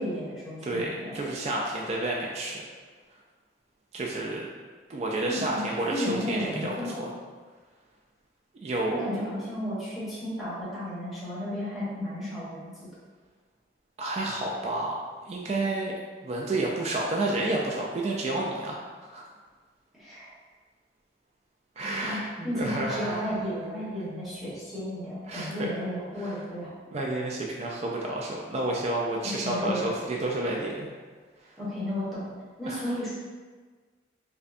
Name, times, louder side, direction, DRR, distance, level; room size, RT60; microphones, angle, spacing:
voice 1, 0.0-1.3 5.2-5.6 5.9-7.0 9.0-12.7 19.9-20.3 22.1-26.7 29.4-30.0 31.6-32.2 32.6-33.1, equal, ahead, -11 dB, 1.2 m, -33 dB
voice 2, 0.6-2.6 3.9-4.5 4.9-7.1 8.6-9.5 14.0-15.0 15.3-15.9 16.2-19.3 21.8-23.3 25.3-25.7 26.2-26.3 26.9-30.9 32.7-32.9, right 2 dB, 35° right, -2 dB, 0.3 m, -30 dB
5.1 x 2.2 x 2.5 m, 1.5 s
head